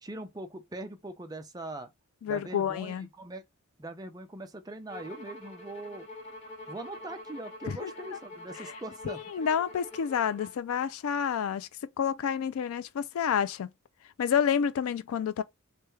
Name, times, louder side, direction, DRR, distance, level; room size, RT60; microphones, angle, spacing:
voice 1, 0.0-1.9 2.3-3.4 3.8-6.1 6.7-9.5, right 2 dB, 15° right, 0.5 m, -41 dB
voice 2, 2.2-3.1 7.8-8.2 8.6-8.7 9.0-11.7 12.0-13.7 14.2-15.4, left 7 dB, 75° left, 0.3 m, -29 dB
Bowed string instrument, 4.9-10.6, left 1 dB, 30° left, 0.8 m, -46 dB
3.3 x 2.2 x 3.1 m
head